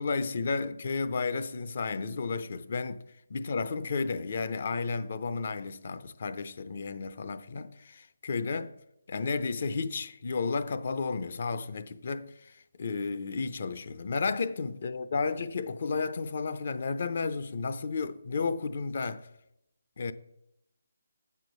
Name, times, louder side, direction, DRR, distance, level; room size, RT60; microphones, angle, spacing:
voice 1, 0.0-3.0 3.3-8.7 9.1-19.3 20.0-20.1, left 4 dB, 50° left, 0.6 m, -32 dB
7.8 x 6.4 x 5.3 m
figure-of-eight pair, 155°, 0 cm